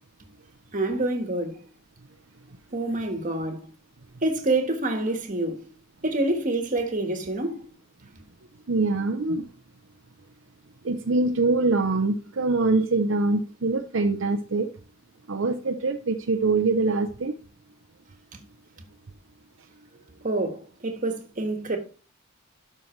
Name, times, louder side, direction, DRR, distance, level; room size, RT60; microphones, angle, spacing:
voice 1, 0.7-1.6 2.7-3.6 4.2-5.6 6.0-7.6 20.2-21.8, right 2 dB, 40° right, 1.5 m, -27 dB
voice 2, 8.7-9.4 10.8-14.7 15.3-17.3, right 3 dB, 70° right, 0.7 m, -24 dB
12.0 x 5.8 x 3.2 m
head